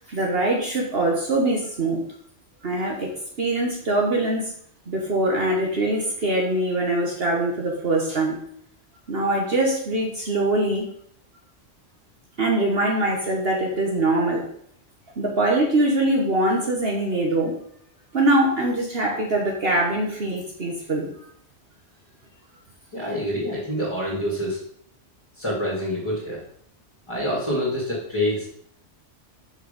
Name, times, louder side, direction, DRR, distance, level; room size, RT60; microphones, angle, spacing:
voice 1, 0.1-2.0 2.6-3.1 3.4-4.5 4.9-8.4 9.1-10.8 12.4-14.5 15.2-17.5 18.1-21.1, right 1 dB, 55° right, 0 dB, 1.4 m, -23 dB
voice 2, 22.9-24.6 25.4-26.4 27.1-28.4, equal, 25° left, -7 dB, 2.3 m, -26 dB
6.6 x 6.1 x 5.2 m, 0.67 s
omnidirectional pair, 1.3 m